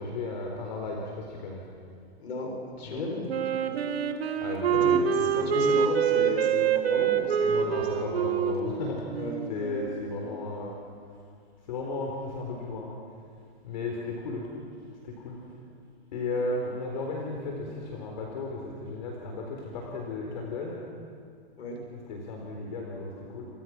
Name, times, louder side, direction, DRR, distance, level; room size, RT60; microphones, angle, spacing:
voice 1, 0.0-1.6 2.9-3.0 4.4-5.0 7.4-9.2 9.5-10.7 11.6-13.0 13.6-14.5 15.0-15.6 16.1-20.8 22.1-23.5, left 3 dB, 45° left, 0 dB, 4.2 m, -34 dB
voice 2, 2.2-4.0 4.8-8.2 9.2-9.6 21.6-21.8, left 1 dB, 80° left, 1 dB, 7.4 m, -35 dB
Wind instrument woodwind instrument, 3.3-10.0, right 7 dB, 75° right, 2.4 m, -26 dB
29.5 x 27.5 x 6.2 m, 2.3 s
hypercardioid pair, 180°, 31 cm